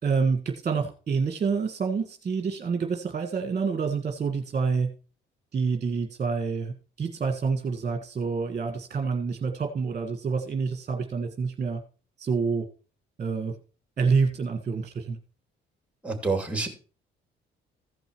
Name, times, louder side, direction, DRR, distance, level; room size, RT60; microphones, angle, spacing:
voice 1, 0.0-4.9 5.5-11.8 12.2-12.7 13.2-13.5 14.0-15.2, right 5 dB, 35° right, 4 dB, 1.7 m, -27 dB
voice 2, 16.0-16.7, right 3 dB, 5° right, 6 dB, 2.7 m, -27 dB
15.0 x 5.3 x 4.6 m, 0.36 s
cardioid pair, 90°, 20 cm